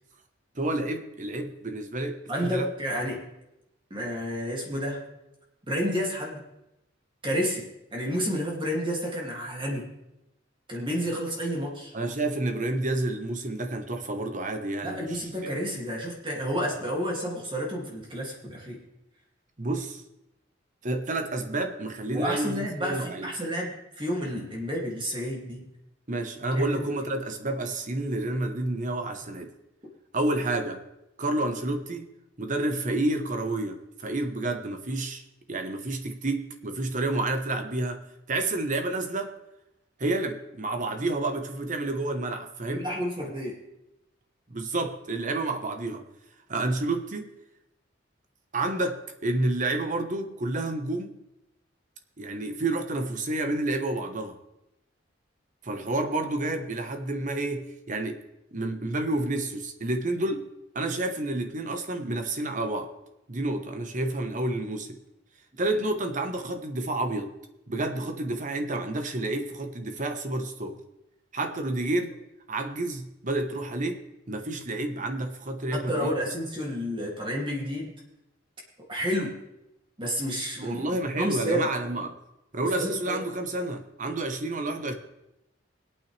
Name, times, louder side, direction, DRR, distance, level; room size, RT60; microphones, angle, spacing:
voice 1, 0.5-2.7 11.9-15.5 19.6-20.0 20.8-23.3 26.1-29.5 30.1-30.8 31.2-32.1 32.4-35.2 35.5-39.3 40.0-42.9 44.5-46.1 46.5-47.3 48.5-51.2 52.2-54.4 55.6-58.2 58.5-62.9 63.3-65.0 65.6-67.3 67.7-70.8 71.3-72.1 72.5-76.2 80.6-82.1 82.5-84.9, right 2 dB, 40° right, 6 dB, 1.2 m, -30 dB
voice 2, 2.3-3.3 3.9-5.0 5.7-6.4 7.2-7.6 7.9-9.9 10.7-11.9 14.8-18.8 22.1-25.7 26.5-26.8 42.7-43.6 75.9-77.9 78.9-79.4 80.0-80.8 81.1-81.7 82.8-83.2, equal, 25° right, -2 dB, 2.5 m, -30 dB
20.5 x 9.0 x 3.4 m, 0.89 s
head